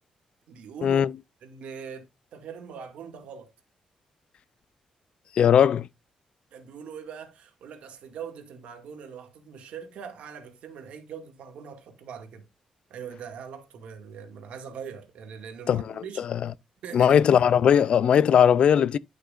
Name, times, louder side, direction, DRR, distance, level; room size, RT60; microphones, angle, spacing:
voice 1, 0.5-1.0 1.4-3.5 6.5-12.5 12.9-16.3 16.8-17.2, right 7 dB, 85° right, 2.1 m, -42 dB
voice 2, 5.4-5.9 15.7-15.9 16.9-19.0, left 8 dB, 55° left, 0.4 m, -19 dB
11.0 x 6.4 x 2.5 m
wide cardioid pair, 160°, 2 cm